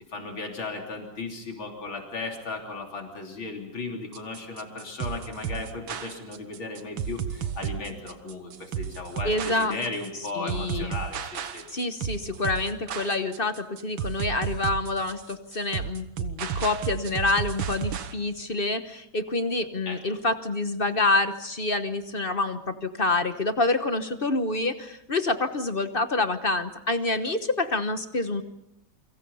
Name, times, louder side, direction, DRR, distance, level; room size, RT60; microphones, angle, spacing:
voice 1, 0.0-11.6 19.9-20.2, left 3 dB, 80° left, 2 dB, 4.1 m, -36 dB
sound 1, 4.1-18.1, right 8 dB, 85° right, 2.1 m, -33 dB
voice 2, 9.2-9.8 10.3-10.9 11.7-28.4, left 2 dB, 35° left, 9 dB, 1.1 m, -27 dB
29.0 x 24.5 x 5.6 m, 0.79 s
omnidirectional pair, 2.2 m